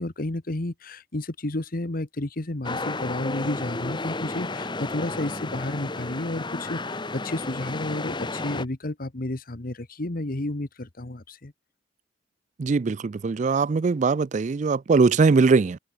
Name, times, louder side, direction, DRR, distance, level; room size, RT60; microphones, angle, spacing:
voice 1, 0.0-11.5, left 1 dB, 45° left, 1.3 m, -31 dB
sound 1, 2.6-8.6, left 2 dB, 25° left, 1.4 m, -32 dB
voice 2, 12.6-15.8, right 4 dB, 40° right, 0.4 m, -21 dB
head